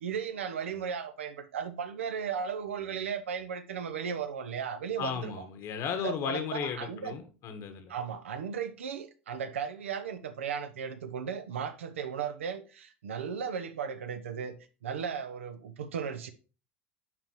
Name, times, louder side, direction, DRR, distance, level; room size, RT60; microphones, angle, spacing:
voice 1, 0.0-5.5 6.0-7.1 7.9-14.5 14.8-16.3, right 7 dB, 80° right, 0.8 m, -36 dB
voice 2, 5.0-7.9, left 7 dB, 50° left, 1.3 m, -35 dB
10.5 x 3.8 x 3.0 m
hypercardioid pair, 80°, 7 cm